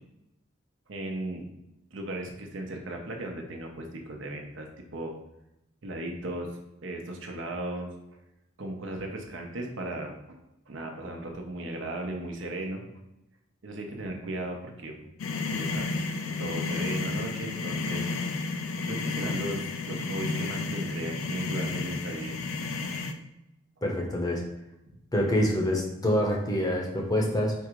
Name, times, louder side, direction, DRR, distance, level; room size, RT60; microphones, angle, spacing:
voice 1, 0.9-1.4 1.9-5.1 5.8-6.5 6.8-7.9 8.6-10.4 10.7-12.8 13.6-15.0 15.5-15.9 16.4-18.1 18.9-22.4, right 1 dB, 70° right, 2 dB, 0.7 m, -36 dB
sound 1, 15.2-23.1, left 3 dB, 80° left, 0.4 m, -32 dB
voice 2, 23.8-24.4 25.1-27.5, equal, 20° left, 0 dB, 0.7 m, -26 dB
4.5 x 2.5 x 4.6 m, 0.88 s
head